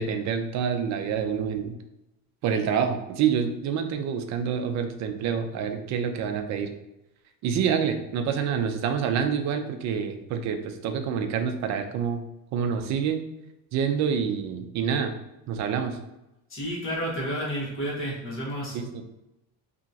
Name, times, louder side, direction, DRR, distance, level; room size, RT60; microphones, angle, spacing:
voice 1, 0.0-1.8 2.4-6.7 7.4-12.2 12.5-13.2 13.7-15.1 15.5-16.0 18.7-19.0, right 7 dB, 45° right, 6 dB, 0.4 m, -27 dB
voice 2, 16.5-18.8, equal, 30° left, -6 dB, 1.3 m, -31 dB
2.9 x 2.4 x 2.7 m, 0.90 s
cardioid pair, 125°, 39 cm